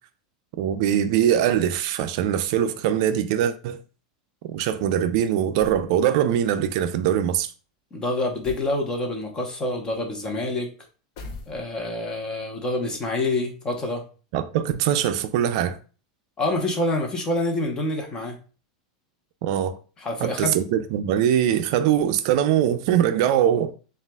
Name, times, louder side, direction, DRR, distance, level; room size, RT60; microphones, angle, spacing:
voice 1, 0.6-3.8 4.4-7.5 14.3-15.8 19.4-19.8 20.2-23.7, right 10 dB, 55° right, 0.4 m, -22 dB
sound 1, 5.6-5.9 8.4-8.8 11.2-11.9, left 2 dB, 55° left, 0.7 m, -40 dB
voice 2, 7.9-10.7 11.5-14.0 16.4-18.4 20.0-20.6, left 2 dB, 20° left, 1.0 m, -27 dB
7.1 x 2.4 x 2.3 m
supercardioid pair, 140°, 4 cm